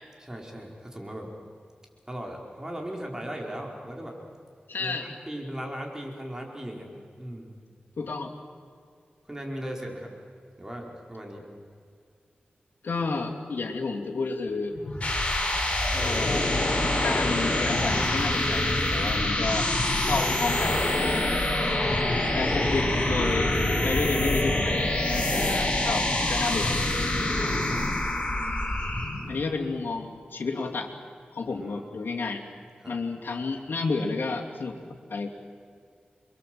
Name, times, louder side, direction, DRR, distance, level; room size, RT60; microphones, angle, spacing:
voice 1, 0.2-1.4 2.1-4.2 4.8-7.5 9.2-10.1 10.6-11.5 27.1-27.9 29.1-29.4 31.5-31.9 32.8-32.9, equal, 15° right, 1 dB, 4.6 m, -38 dB
voice 2, 4.7-5.1 8.0-8.3 12.8-14.8 15.9-16.5 17.0-19.7 20.0-21.4 22.3-23.5 23.8-26.7 29.3-30.9 31.3-32.4 32.9-35.3, left 4 dB, 85° left, -1 dB, 2.8 m, -31 dB
sound 1, 14.7-29.3, left 1 dB, 40° left, 5.8 m, -25 dB
28.5 x 23.5 x 7.8 m, 2.2 s
wide cardioid pair, 70°, 3 cm